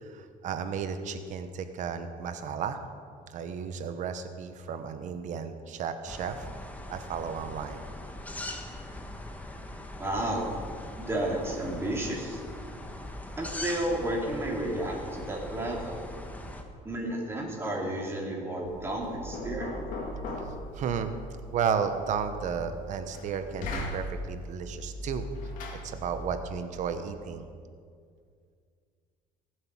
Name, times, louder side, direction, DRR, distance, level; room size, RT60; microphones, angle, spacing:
voice 1, 0.0-2.8 3.3-6.5 6.9-7.8 19.6-19.7 20.2-20.3 20.7-21.1 21.5-25.3 25.8-27.5, right 7 dB, 60° right, 9 dB, 1.1 m, -33 dB
sound 1, 6.1-16.6, left 1 dB, 10° left, 1.3 m, -41 dB
voice 2, 10.0-10.5 11.1-12.4 13.4-16.0 16.8-19.9, right 1 dB, 15° right, -2 dB, 3.2 m, -32 dB
Knock, 18.6-26.5, left 1 dB, 65° left, 2.3 m, -39 dB
18.5 x 7.9 x 6.2 m, 2.2 s
cardioid pair, 125°, 14 cm